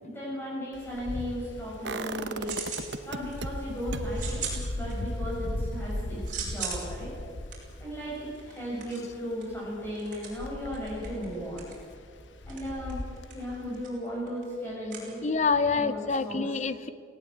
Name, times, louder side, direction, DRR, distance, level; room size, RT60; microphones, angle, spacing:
voice 1, 0.0-2.5 3.0-6.2 6.5-7.1 7.8-11.7 12.5-13.0 13.3-15.2 15.7-16.4, equal, 10° left, -6 dB, 6.4 m, -36 dB
Wind, 0.7-13.9, left 1 dB, 85° left, 1.0 m, -38 dB
sound 1, 1.8-3.5 3.9-9.8 10.1-10.2, right 3 dB, 75° right, 1.0 m, -40 dB
sound 2, 2.4-2.9 3.3-3.7 4.1-5.3 5.7-15.7, right 6 dB, 45° right, 5.6 m, -41 dB
voice 2, 15.2-16.9, left 4 dB, 40° left, 14 dB, 0.7 m, -26 dB
18.5 x 17.5 x 8.5 m, 2.2 s
head